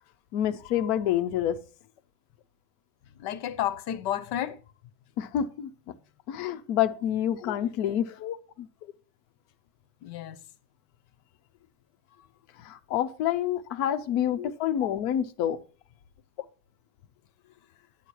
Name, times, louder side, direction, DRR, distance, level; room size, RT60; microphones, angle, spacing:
voice 1, 0.3-1.6 5.2-5.7 6.3-8.1 12.6-15.6, left 10 dB, 70° left, 1.1 m, -27 dB
voice 2, 3.2-4.6 7.3-7.6 8.2-8.4 8.8-8.9 10.0-10.4 14.4-14.9, left 11 dB, 85° left, 1.3 m, -33 dB
9.7 x 8.4 x 4.5 m
omnidirectional pair, 1.8 m